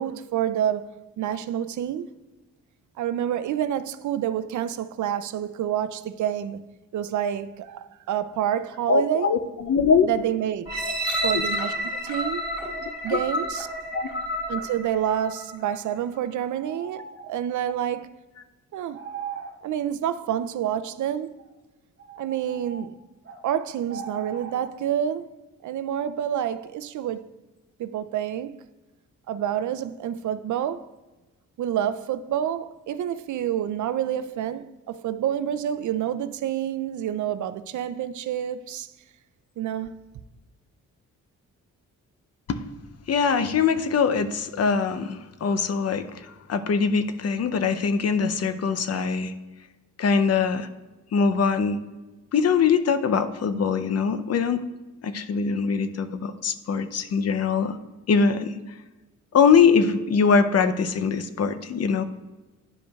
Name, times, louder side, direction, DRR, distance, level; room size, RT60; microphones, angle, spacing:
voice 1, 0.0-2.1 3.0-9.4 10.0-10.6 11.2-11.7 12.0-12.5 13.0-13.7 14.5-18.2 18.7-19.0 19.6-21.3 22.2-23.0 23.4-25.3 25.6-27.3 27.8-28.6 29.3-30.9 31.6-38.9 39.6-40.0, right 10 dB, 70° right, 0.4 m, -28 dB
voice 2, 8.9-10.1 11.2-11.4 12.8-13.2 13.9-14.1 42.5-42.6 43.1-49.3 50.0-50.7 51.1-51.8 52.3-54.6 55.0-57.8 58.1-58.6 59.3-62.0, left 5 dB, 50° left, 0.6 m, -22 dB
sound 1, 10.7-15.6 16.2-16.3, equal, 15° right, 2.3 m, -30 dB
sound 2, 16.6-17.4 18.9-19.6 21.4-21.5 22.0-23.4 23.9-24.7, right 6 dB, 40° right, 0.8 m, -39 dB
10.5 x 5.0 x 2.3 m
cardioid pair, 90°, 31 cm